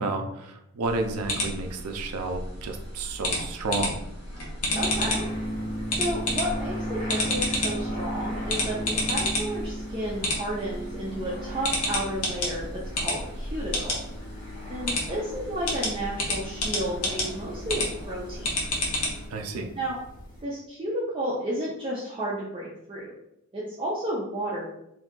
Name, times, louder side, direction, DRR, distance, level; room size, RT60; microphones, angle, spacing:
voice 1, 0.0-4.0 19.3-19.7, right 2 dB, 85° right, 5 dB, 0.5 m, -31 dB
sound 1, 0.8-19.3, left 1 dB, 80° left, 0.8 m, -31 dB
sound 2, 4.7-20.4, equal, 35° left, 0.9 m, -36 dB
voice 2, 4.8-5.3 5.9-14.0 14.7-18.6 19.8-20.0 20.4-23.1 23.5-24.7, right 1 dB, 25° right, -7 dB, 0.5 m, -32 dB
2.7 x 2.4 x 3.7 m, 0.80 s
head